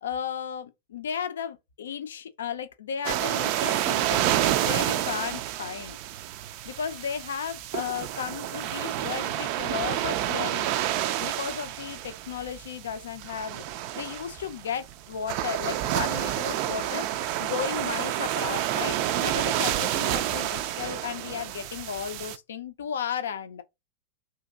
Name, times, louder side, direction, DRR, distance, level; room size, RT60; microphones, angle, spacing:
voice 1, 0.0-4.3 4.6-6.0 6.6-13.6 13.9-23.6, left 8 dB, 65° left, 0.4 m, -34 dB
sound 1, 3.0-22.4, right 12 dB, 45° right, 0.3 m, -29 dB
2.8 x 2.6 x 3.7 m
figure-of-eight pair, 90°, 0 cm